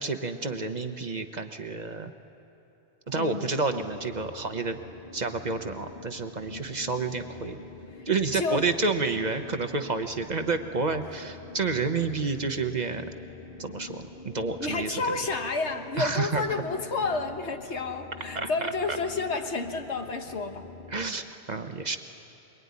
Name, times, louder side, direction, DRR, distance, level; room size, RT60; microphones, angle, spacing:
voice 1, 0.0-2.1 3.1-4.8 5.1-7.6 8.1-13.1 13.6-15.0 16.0-16.4 18.3-19.0 20.9-22.0, right 4 dB, 40° right, 7 dB, 1.0 m, -29 dB
voice 2, 3.2-3.5 6.4-6.6 8.0-8.1 8.3-8.7 14.6-20.6, left 3 dB, 75° left, 5 dB, 1.6 m, -30 dB
sound 1, 3.7-21.1, left 4 dB, 55° left, 1.3 m, -46 dB
24.5 x 22.0 x 9.6 m, 3.0 s
omnidirectional pair, 1.2 m